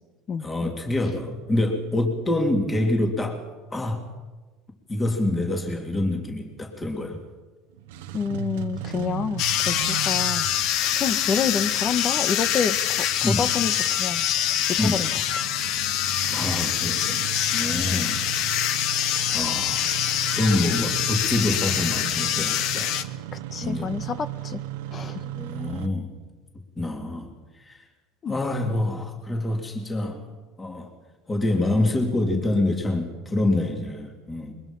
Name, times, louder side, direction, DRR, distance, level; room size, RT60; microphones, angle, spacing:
voice 1, 0.4-3.4 3.7-4.0 4.9-7.2 13.2-13.4 14.8-15.0 16.3-17.2 17.5-18.2 19.3-19.8 20.3-22.9 23.6-23.9 25.2-26.2 26.8-27.8 28.3-30.2 30.6-30.9 31.3-34.5, left 1 dB, 20° left, 2 dB, 3.6 m, -26 dB
Engine starting, 7.7-25.9, right 11 dB, 90° right, 1.1 m, -36 dB
voice 2, 8.1-12.8 13.2-13.7 14.0-15.2 17.9-18.1 23.3-24.6 24.9-25.2 28.2-28.3, left 6 dB, 35° left, 12 dB, 1.4 m, -28 dB
sound 1, 9.4-23.0, left 11 dB, 65° left, 1.2 m, -25 dB
22.5 x 22.0 x 5.6 m, 1.2 s
supercardioid pair, 105°, 0 cm